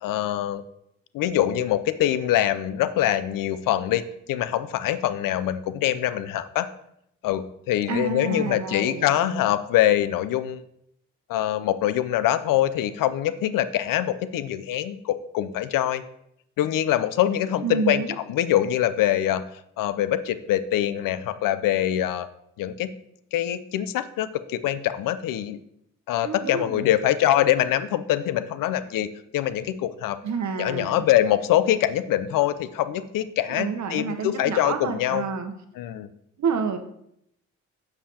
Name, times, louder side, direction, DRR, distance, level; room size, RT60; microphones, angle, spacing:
voice 1, 0.0-0.6 1.1-6.7 7.2-10.6 11.3-16.0 16.6-18.0 18.3-19.5 19.8-22.3 22.6-22.9 23.3-25.6 26.1-29.1 29.3-30.2 30.6-35.2 35.8-36.1, left 12 dB, 65° left, 14 dB, 0.5 m, -24 dB
voice 2, 7.9-9.5 17.6-18.1 26.2-26.8 30.2-31.1 33.5-35.5 36.4-36.8, right 5 dB, 50° right, 7 dB, 1.0 m, -29 dB
7.1 x 6.7 x 2.8 m, 0.75 s
hypercardioid pair, 50°, 36 cm